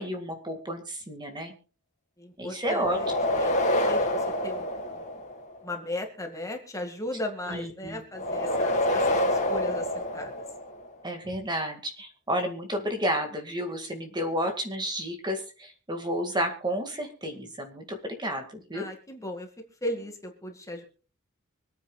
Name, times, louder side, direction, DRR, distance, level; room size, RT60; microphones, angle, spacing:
voice 1, 0.0-1.5 2.4-3.0 7.5-8.0 11.0-18.9, equal, 20° right, 4 dB, 2.0 m, -31 dB
voice 2, 2.2-5.1 5.6-10.3 18.7-19.5 19.8-20.8, left 1 dB, 15° left, 3 dB, 2.0 m, -37 dB
sound 1, 2.8-5.5 8.1-10.9, left 1 dB, 35° left, 2.2 m, -27 dB
25.5 x 9.3 x 2.4 m, 0.38 s
head